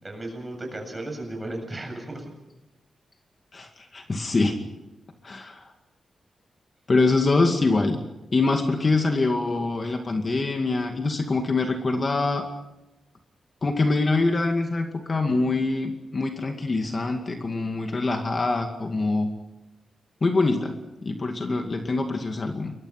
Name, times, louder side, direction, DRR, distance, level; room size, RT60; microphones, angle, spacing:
voice 1, 0.0-2.3, right 1 dB, 20° right, 3 dB, 7.8 m, -35 dB
voice 2, 3.5-4.6 5.2-5.7 6.9-8.0 8.3-12.4 13.6-19.3 20.2-20.7 21.0-22.7, left 3 dB, 35° left, 4 dB, 2.2 m, -24 dB
28.5 x 22.5 x 6.0 m, 0.98 s
wide cardioid pair, 110°, 0 cm